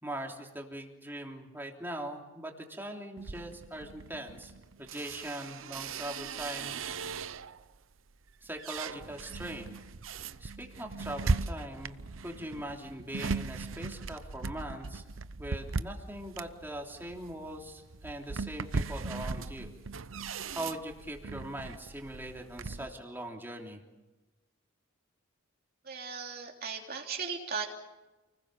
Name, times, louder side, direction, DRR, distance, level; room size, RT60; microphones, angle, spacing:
voice 1, 0.0-4.5 4.8-6.7 8.4-9.8 10.4-15.0 15.4-19.7 20.5-23.8, right 1 dB, 10° right, 1 dB, 3.3 m, -41 dB
sound 1, 3.2-7.7 8.1-22.9, right 4 dB, 75° right, 0.8 m, -38 dB
voice 2, 25.8-27.7, right 6 dB, 45° right, 1 dB, 3.2 m, -37 dB
30.0 x 20.0 x 7.0 m, 1.1 s
head